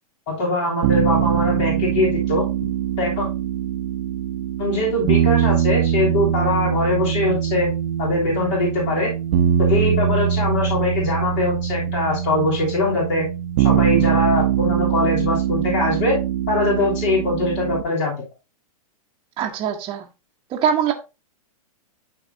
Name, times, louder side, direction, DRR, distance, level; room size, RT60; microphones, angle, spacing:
voice 1, 0.3-2.4 3.0-3.3 4.6-7.7 8.0-9.1 9.7-13.3 13.6-16.2 16.5-18.1, left 2 dB, 50° left, 3.2 m, -22 dB
sound 1, 0.8-17.8, right 10 dB, 60° right, 0.9 m, -22 dB
voice 2, 19.4-20.1 20.5-20.9, right 8 dB, 30° right, 1.1 m, -22 dB
12.5 x 4.1 x 2.7 m
hypercardioid pair, 130°, 19 cm